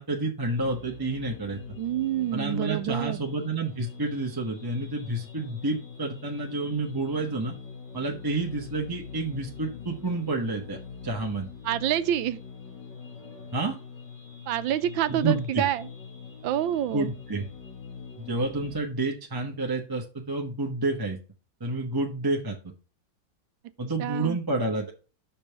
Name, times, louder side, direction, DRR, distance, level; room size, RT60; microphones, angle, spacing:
voice 1, 0.0-1.6 2.3-7.5 7.9-10.8 11.0-11.5 13.5-13.8 15.1-15.6 16.9-17.5 18.2-21.2 21.6-22.6 23.8-24.9, right 2 dB, 15° right, 0.7 m, -29 dB
sound 1, 0.5-18.8, left 6 dB, 65° left, 2.7 m, -43 dB
voice 2, 1.8-3.2 11.6-12.4 14.5-15.9 16.4-17.1 24.0-24.4, right 12 dB, 85° right, 1.4 m, -27 dB
5.9 x 5.4 x 6.7 m
omnidirectional pair, 2.1 m